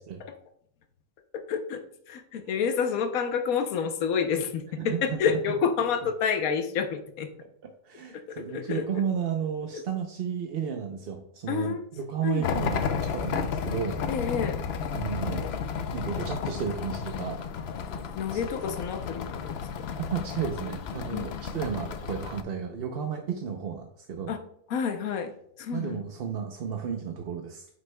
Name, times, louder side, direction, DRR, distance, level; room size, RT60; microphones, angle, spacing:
voice 1, 1.5-1.8 2.1-7.3 8.3-8.8 11.5-11.9 12.2-12.5 14.1-14.6 17.9-19.2 21.1-21.4 24.3-24.4 24.7-25.3 25.6-26.0, left 6 dB, 85° left, 7 dB, 1.2 m, -28 dB
voice 2, 4.8-5.2 7.8-14.0 14.9-15.5 15.9-17.4 18.3-18.4 20.0-24.3 25.7-27.7, right 7 dB, 55° right, 4 dB, 0.8 m, -33 dB
sound 1, 12.4-22.4, left 6 dB, 60° left, 0.7 m, -32 dB
9.3 x 6.4 x 2.2 m, 0.72 s
omnidirectional pair, 1.4 m